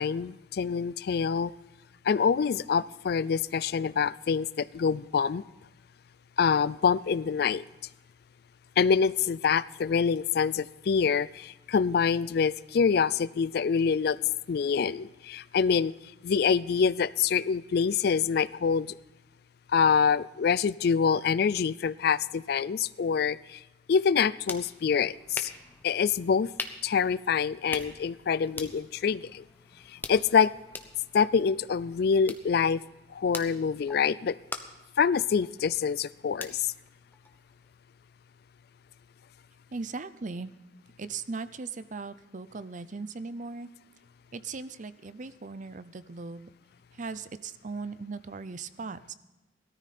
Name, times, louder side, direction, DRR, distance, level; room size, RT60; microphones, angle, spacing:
voice 1, 0.0-1.5 2.1-5.4 6.4-7.6 8.8-14.2 14.5-15.9 16.2-18.9 19.7-23.6 23.9-25.5 25.8-26.5 26.8-29.4 30.1-30.5 31.1-32.8 33.1-34.3 35.0-36.7, left 6 dB, 60° left, 19 dB, 0.4 m, -26 dB
sound 1, 24.0-37.8, left 3 dB, 10° left, 1.0 m, -44 dB
voice 2, 39.7-40.5 41.0-43.7 44.3-46.5 47.0-49.1, right 4 dB, 45° right, 14 dB, 0.6 m, -38 dB
18.0 x 13.5 x 4.2 m, 1.1 s
head